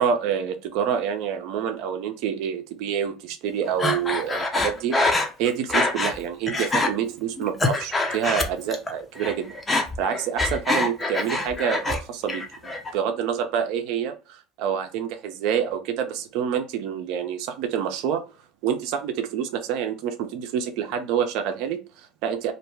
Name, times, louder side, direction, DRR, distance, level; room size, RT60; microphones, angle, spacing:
voice 1, 0.0-9.5 10.0-18.2 18.6-22.5, right 8 dB, 65° right, 0.5 m, -27 dB
Breathing, 3.8-6.2 6.5-6.9 7.4-8.9 9.2-12.0 12.3-12.9, left 2 dB, 25° left, 0.7 m, -25 dB
2.5 x 2.1 x 3.2 m
hypercardioid pair, 75°, 0 cm